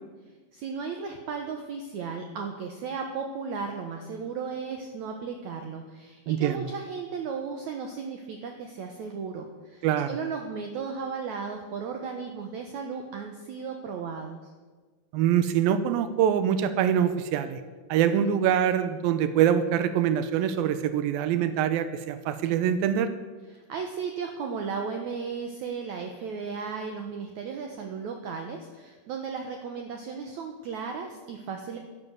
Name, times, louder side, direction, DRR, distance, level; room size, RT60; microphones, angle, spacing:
voice 1, 0.5-14.5 23.5-31.8, right 5 dB, 65° right, 4 dB, 2.1 m, -35 dB
voice 2, 6.3-6.7 9.8-10.2 15.1-17.6 17.9-23.1, right 9 dB, 90° right, 11 dB, 2.6 m, -24 dB
12.5 x 11.0 x 8.0 m, 1.4 s
omnidirectional pair, 4.1 m